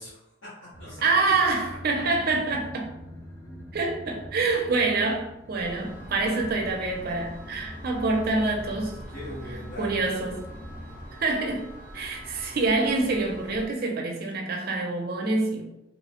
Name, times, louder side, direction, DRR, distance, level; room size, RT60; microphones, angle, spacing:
voice 1, 0.0-1.3 9.1-10.0, equal, 80° left, 1.0 m, -41 dB
sound 1, 0.7-11.0, equal, 15° left, 0.4 m, -44 dB
voice 2, 1.0-2.9 3.7-9.0 9.8-10.4 11.2-11.7 11.9-15.6, right 3 dB, 50° right, 0.5 m, -26 dB
sound 2, 5.6-13.7, equal, 10° right, 0.8 m, -44 dB
3.0 x 2.1 x 2.8 m
head